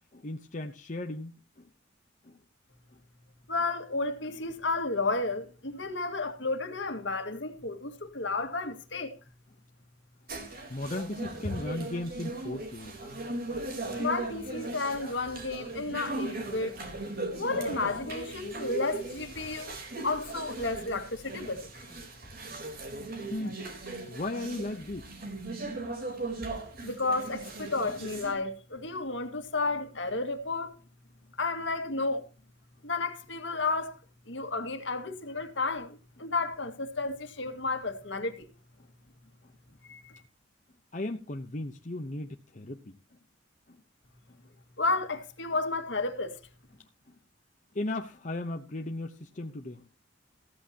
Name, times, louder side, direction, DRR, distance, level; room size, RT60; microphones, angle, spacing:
voice 1, 0.1-1.7 2.2-2.4 10.7-12.9 19.5-19.6 23.3-23.6 24.1-25.1 40.9-43.0 43.7-43.8 47.7-49.8, left 2 dB, 40° left, 0.9 m, -36 dB
voice 2, 3.5-9.1 14.0-16.7 17.3-19.7 20.0-21.7 26.8-30.7 31.4-32.2 32.8-33.9 34.3-35.9 36.2-38.3 39.9-40.0 44.8-46.3, left 3 dB, 65° left, 2.1 m, -32 dB
sound 1, 10.3-28.3, right 2 dB, 50° right, 3.8 m, -38 dB
15.0 x 14.0 x 2.9 m
head